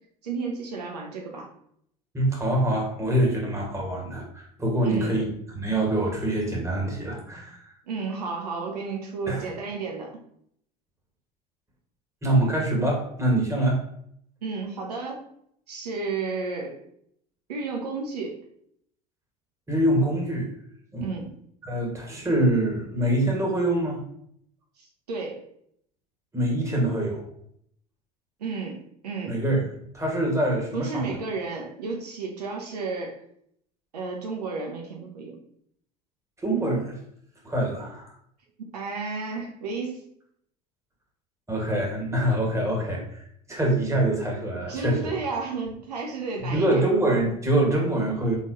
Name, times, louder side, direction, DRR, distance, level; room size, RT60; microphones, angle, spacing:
voice 1, 0.2-1.5 4.8-5.2 7.9-10.1 14.4-15.2 15.7-16.8 17.5-18.4 21.0-21.4 24.8-25.4 28.4-29.5 30.7-33.2 33.9-35.4 38.6-40.0 44.5-46.8, right 4 dB, 85° right, 1 dB, 0.8 m, -32 dB
voice 2, 2.1-5.2 5.5-7.7 9.3-9.5 12.2-13.8 19.7-20.5 20.9-21.1 21.6-24.0 26.3-27.2 29.3-29.6 29.9-31.2 36.4-37.0 37.4-38.1 41.5-45.1 46.4-48.4, right 1 dB, 15° right, -2 dB, 1.7 m, -25 dB
4.0 x 3.8 x 2.9 m, 0.68 s
hypercardioid pair, 70°, 20 cm